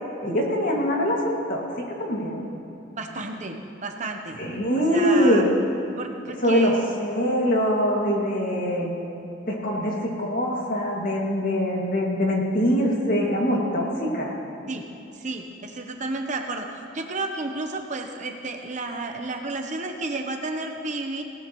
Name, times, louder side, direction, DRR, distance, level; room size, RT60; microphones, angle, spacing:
voice 1, 0.2-1.6 1.9-2.5 4.4-5.5 6.4-6.7 7.0-8.9 9.5-14.3, equal, 45° left, -2 dB, 2.1 m, -23 dB
voice 2, 3.0-4.4 4.9-5.5 6.0-6.8 14.7-14.8 15.1-21.2, right 2 dB, 35° right, 4 dB, 0.9 m, -32 dB
18.0 x 17.5 x 3.1 m, 2.8 s
head